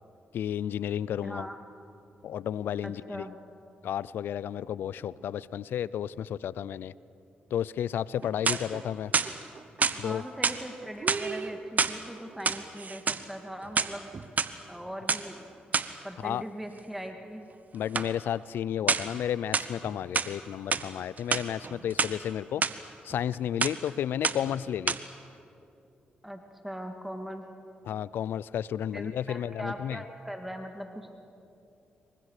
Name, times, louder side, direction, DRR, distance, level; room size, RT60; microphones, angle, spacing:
voice 1, 0.3-1.5 2.2-3.3 3.8-6.9 7.5-9.1 10.0-10.2 16.2-16.4 17.7-22.6 23.0-25.0 27.8-30.0, left 10 dB, 80° left, 20 dB, 0.5 m, -32 dB
voice 2, 1.2-1.6 2.8-3.4 9.9-14.1 14.7-15.5 16.0-17.5 26.2-27.4 28.9-31.1, equal, 5° right, 4 dB, 2.3 m, -40 dB
sound 1, 8.2-8.8 9.1-10.0 10.4-10.6 11.0-12.0 12.3-13.2 13.6-14.5 15.1-15.2 15.7-16.0 17.9-18.1 18.9-19.2 19.5-20.3 20.7-20.9 21.2-22.1 22.6-22.7 23.1-23.4 23.6-23.9 24.2-24.6 24.9-25.0, right 5 dB, 50° right, 1.1 m, -28 dB
27.0 x 24.0 x 6.6 m, 2.8 s
supercardioid pair, 60°, 4 cm